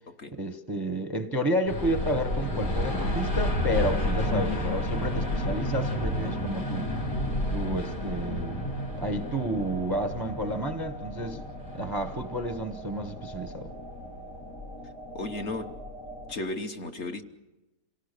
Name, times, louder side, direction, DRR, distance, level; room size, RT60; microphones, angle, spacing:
voice 1, 0.4-6.9 7.5-8.6 9.0-11.4 11.7-13.7, equal, 20° right, 7 dB, 0.6 m, -31 dB
sound 1, 1.7-16.3, left 1 dB, 80° left, 3.4 m, -32 dB
voice 2, 15.1-15.7 16.3-17.2, left 2 dB, 45° left, 5 dB, 1.3 m, -34 dB
27.5 x 18.0 x 6.7 m, 1.1 s
omnidirectional pair, 1.8 m